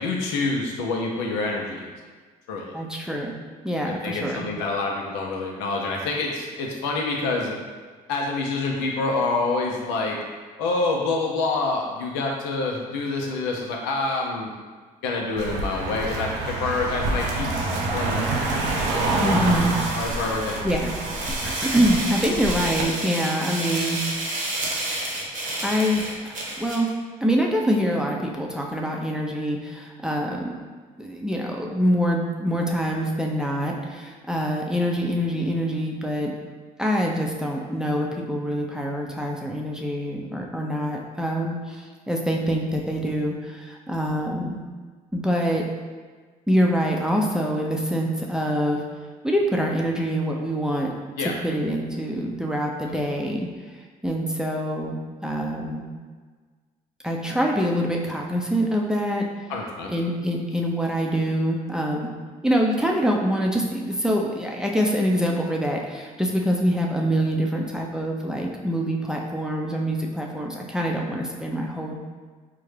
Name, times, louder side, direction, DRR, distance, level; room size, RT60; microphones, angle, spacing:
voice 1, 0.0-1.9 2.5-2.7 3.8-7.6 8.1-10.2 10.6-14.5 15.0-18.3 19.9-20.7 51.2-51.3 59.5-59.9, left 3 dB, 80° left, 0 dB, 0.6 m, -27 dB
voice 2, 2.7-3.4 3.6-4.5 19.1-19.7 20.0-20.2 20.6-21.0 21.4-24.0 25.6-26.0 26.6-26.9 27.2-30.5 31.0-36.3 36.8-44.6 45.1-45.6 46.5-48.8 49.2-50.9 51.2-53.5 54.0-55.0 55.2-55.9 57.0-59.2 59.9-62.1 62.4-72.0, equal, 5° right, -1 dB, 0.5 m, -25 dB
Car passing by, 15.4-22.9, right 2 dB, 70° right, 0.5 m, -27 dB
sound 1, 17.1-26.9, right 2 dB, 45° right, 0.9 m, -31 dB
3.7 x 2.1 x 3.2 m, 1.5 s
hypercardioid pair, 60°, 18 cm